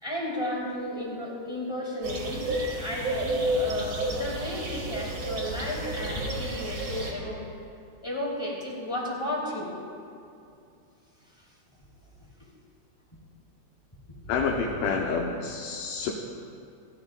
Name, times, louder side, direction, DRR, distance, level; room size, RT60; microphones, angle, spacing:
voice 1, 0.0-2.4 2.7-7.4 8.0-9.7 11.3-11.4 14.2-15.0, left 1 dB, 5° left, -5 dB, 2.6 m, -34 dB
sound 1, 2.0-7.1, right 1 dB, 40° right, 2.2 m, -31 dB
voice 2, 14.3-16.1, left 5 dB, 75° left, -1 dB, 3.3 m, -28 dB
29.5 x 15.5 x 2.5 m, 2.5 s
omnidirectional pair, 5.7 m